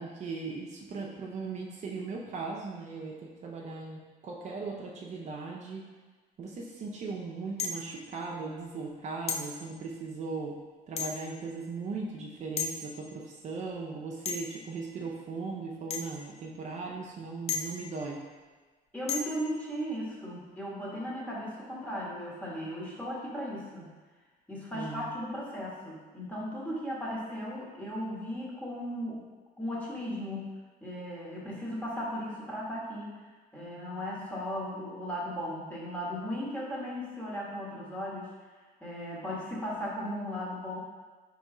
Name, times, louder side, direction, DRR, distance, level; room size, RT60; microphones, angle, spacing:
voice 1, 0.0-5.8 6.4-10.6 10.9-18.2 24.7-25.1, right 4 dB, 45° right, -2 dB, 0.5 m, -38 dB
sound 1, 7.6-8.0 9.3-9.5 11.0-11.3 12.6-12.8 14.3-14.6 15.9-16.1 17.5-17.9 19.1-19.4, left 5 dB, 35° left, 0.5 m, -34 dB
voice 2, 18.9-23.9 24.5-29.2 29.6-30.5 30.8-33.3 33.5-38.3 38.8-40.8, equal, 10° left, -6 dB, 1.2 m, -36 dB
4.1 x 3.0 x 3.7 m, 1.4 s
cardioid pair, 110°, 17 cm